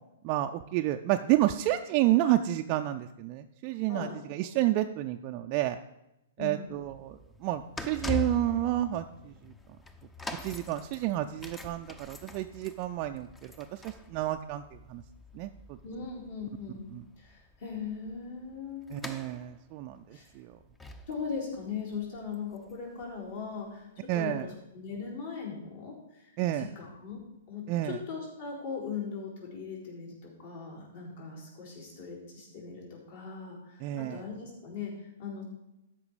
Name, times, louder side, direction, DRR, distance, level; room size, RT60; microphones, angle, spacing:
voice 1, 0.2-5.8 6.4-9.5 10.4-14.6 14.9-15.0 15.3-15.8 16.9-17.0 18.9-20.6 24.1-24.5 26.4-26.7 27.7-28.0 33.8-34.2, right 14 dB, 40° right, 5 dB, 0.4 m, -30 dB
voice 2, 6.4-6.7 15.8-16.9 17.2-19.3 20.1-20.3 21.1-27.2 27.5-35.4, left 5 dB, 55° left, -3 dB, 3.8 m, -39 dB
sound 1, 6.7-23.7 24.3-24.4, left 2 dB, 10° left, 0.6 m, -44 dB
13.0 x 5.2 x 4.9 m, 0.91 s
figure-of-eight pair, 115°, 0 cm